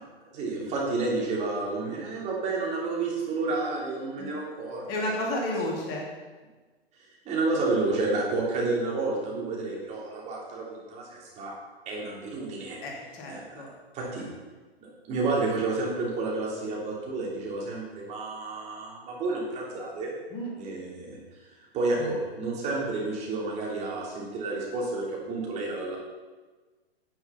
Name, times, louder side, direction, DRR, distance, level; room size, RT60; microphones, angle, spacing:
voice 1, 0.3-5.1 7.2-11.5 11.8-12.8 13.3-13.4 13.9-14.2 14.8-20.1 20.6-21.2 21.7-26.0, right 3 dB, 20° right, -4 dB, 3.1 m, -30 dB
voice 2, 4.9-6.1 12.8-13.7 14.1-14.3 20.3-20.5, left 1 dB, 30° left, -2 dB, 2.8 m, -32 dB
10.5 x 9.5 x 5.7 m, 1.3 s
figure-of-eight pair, 120°, 32 cm